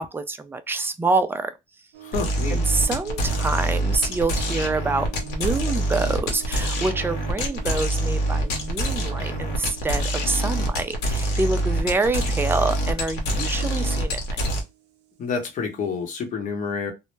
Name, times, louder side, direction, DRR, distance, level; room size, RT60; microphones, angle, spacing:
voice 1, 0.0-1.5 2.5-14.2, right 3 dB, 15° right, 0.3 m, -26 dB
sound 1, 1.9-16.1, right 17 dB, 85° right, 0.6 m, -46 dB
voice 2, 2.0-2.6 15.2-16.9, left 5 dB, 50° left, 0.8 m, -28 dB
sound 2, 2.1-14.6, right 1 dB, 85° left, 0.8 m, -25 dB
2.1 x 2.0 x 3.1 m
cardioid pair, 110°, 17 cm